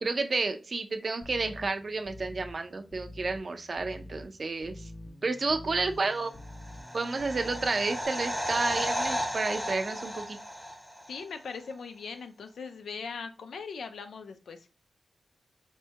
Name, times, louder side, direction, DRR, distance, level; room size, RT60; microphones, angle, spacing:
voice 1, 0.0-4.9 5.2-6.3 6.9-10.4, right 3 dB, 55° right, 6 dB, 0.5 m, -31 dB
sound 1, 1.2-8.1, left 1 dB, 25° left, 0.5 m, -47 dB
sound 2, 6.4-11.2 11.5-11.6, equal, 5° right, 0.8 m, -34 dB
voice 2, 11.1-14.6, left 5 dB, 85° left, 7 dB, 0.4 m, -40 dB
4.3 x 2.2 x 2.8 m, 0.33 s
cardioid pair, 45°, 0 cm